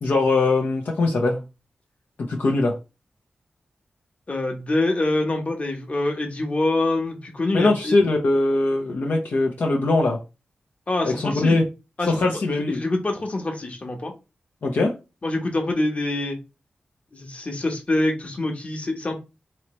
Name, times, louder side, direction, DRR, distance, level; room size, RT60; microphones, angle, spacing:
voice 1, 0.0-1.4 2.2-2.8 7.5-10.2 11.0-11.6 12.1-12.8 14.6-14.9, left 2 dB, 70° left, 0.7 m, -21 dB
voice 2, 4.3-7.9 10.9-11.6 12.0-14.1 15.2-16.4 17.1-19.2, left 2 dB, 40° left, 1.1 m, -25 dB
3.1 x 3.0 x 3.0 m
cardioid pair, 55°, 3 cm